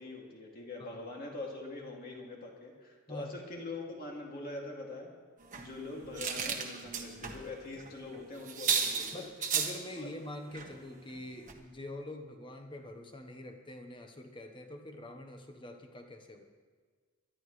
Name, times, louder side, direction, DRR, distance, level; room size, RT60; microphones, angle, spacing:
voice 1, 0.0-5.1 5.6-9.3 10.0-10.1, left 2 dB, 45° left, -1 dB, 2.5 m, -43 dB
sound 1, 5.5-7.4 7.7-7.9 8.1-8.2 8.5-9.8 10.5-10.7 11.1-11.2 11.5-11.6, right 6 dB, 35° right, 1.3 m, -34 dB
voice 2, 9.1-16.5, left 1 dB, 20° left, 5 dB, 1.1 m, -45 dB
22.5 x 12.0 x 3.3 m, 1.6 s
head